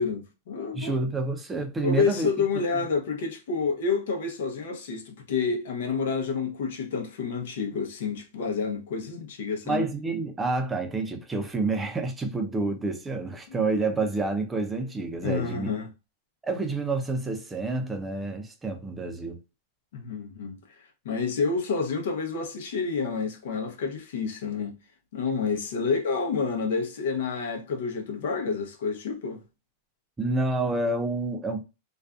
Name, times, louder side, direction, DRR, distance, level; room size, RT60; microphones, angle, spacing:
voice 1, 0.0-1.0 1.8-9.8 15.2-15.9 19.9-20.6 21.0-24.8 25.1-29.4, left 5 dB, 75° left, 0.7 m, -29 dB
voice 2, 0.7-2.3 9.7-15.7 16.4-19.4 30.2-31.6, right 3 dB, 10° right, 0.5 m, -28 dB
2.5 x 2.2 x 2.3 m
supercardioid pair, 140°, 0 cm